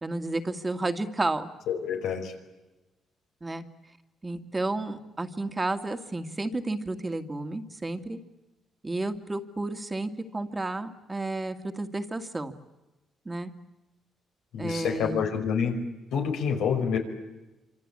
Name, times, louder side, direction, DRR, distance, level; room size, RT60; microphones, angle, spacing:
voice 1, 0.0-1.5 3.4-3.6 4.2-8.2 8.8-12.5 13.3-13.5 14.6-15.2, right 2 dB, 20° right, 7 dB, 2.2 m, -31 dB
voice 2, 1.7-2.3 14.5-15.8 16.1-17.0, left 7 dB, 85° left, 3 dB, 5.4 m, -27 dB
26.5 x 26.0 x 8.7 m, 1.1 s
cardioid pair, 90°, 0 cm